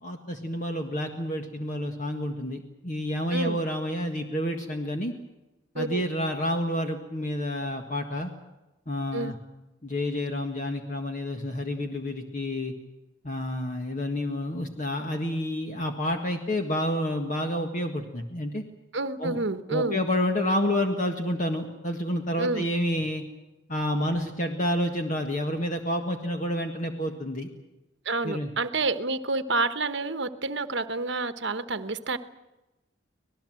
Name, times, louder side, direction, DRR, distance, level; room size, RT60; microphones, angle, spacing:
voice 1, 0.0-5.1 5.7-8.3 8.9-9.4 9.8-12.7 13.2-18.6 19.2-19.4 19.7-23.2 23.7-27.5 28.2-28.5, left 1 dB, 40° left, 4 dB, 1.7 m, -29 dB
voice 2, 5.7-6.0 9.1-9.3 18.9-20.0 22.4-22.7 28.0-32.2, right 3 dB, 60° right, 11 dB, 1.1 m, -29 dB
26.0 x 18.5 x 7.7 m, 1.0 s
head